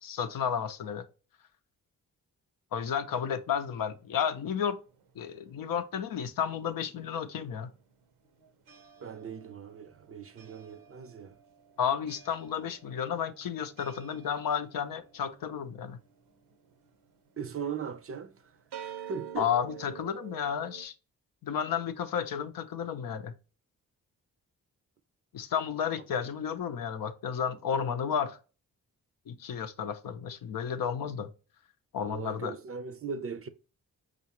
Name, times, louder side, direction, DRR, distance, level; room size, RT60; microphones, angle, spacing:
voice 1, 0.0-1.1 2.7-4.8 5.2-7.7 11.8-16.0 19.4-20.9 21.4-23.3 25.3-28.4 29.3-31.3 31.9-32.5, left 8 dB, 65° left, 0.6 m, -32 dB
sound 1, 3.1-5.8 6.1-20.8, right 9 dB, 85° right, 0.8 m, -50 dB
voice 2, 9.0-11.4 17.4-18.4 18.8-19.5 32.0-33.5, right 6 dB, 35° right, 0.5 m, -39 dB
4.8 x 2.4 x 2.8 m
supercardioid pair, 45°, 38 cm